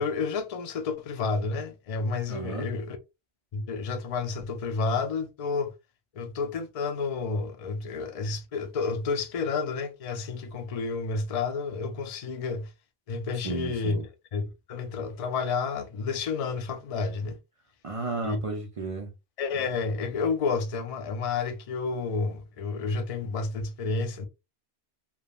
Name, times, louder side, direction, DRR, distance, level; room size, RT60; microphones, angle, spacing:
voice 1, 0.0-3.0 3.5-5.7 6.1-12.7 13.1-17.4 18.2-18.4 19.4-24.3, left 4 dB, 55° left, 0.4 m, -30 dB
voice 2, 2.3-2.7 13.4-14.0 17.8-19.1, right 3 dB, 60° right, 0.3 m, -33 dB
3.3 x 2.0 x 2.2 m
omnidirectional pair, 1.1 m